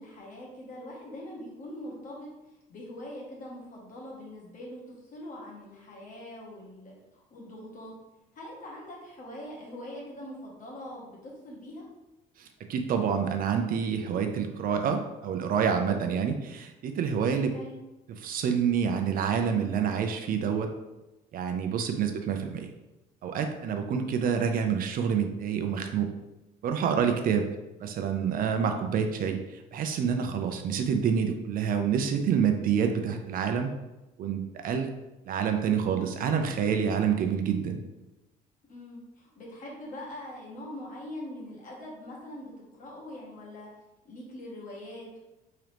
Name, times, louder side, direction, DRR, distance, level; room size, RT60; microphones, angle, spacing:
voice 1, 0.0-2.3 2.7-7.9 8.3-11.8 17.5-17.8 27.4-27.6 38.7-42.5 42.8-43.7 44.0-45.2, left 1 dB, 50° left, -3 dB, 1.5 m, -43 dB
voice 2, 12.4-17.5 18.2-20.7 21.3-22.7 23.2-26.1 26.6-27.5 27.8-33.7 34.2-34.9 35.3-37.8, right 7 dB, 60° right, 5 dB, 0.5 m, -27 dB
3.7 x 3.0 x 3.4 m, 1.0 s
cardioid pair, 110°, 17 cm